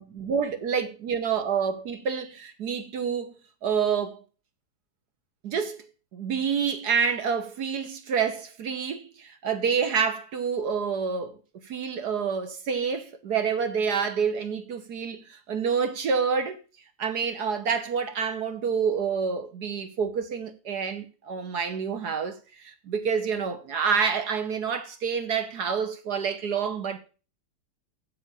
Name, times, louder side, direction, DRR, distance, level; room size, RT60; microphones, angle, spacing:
voice 1, 0.0-3.3 3.6-4.2 5.4-5.8 6.1-11.4 11.6-16.6 17.0-27.0, right 6 dB, 55° right, 1.3 m, -28 dB
7.5 x 7.5 x 6.9 m
omnidirectional pair, 2.4 m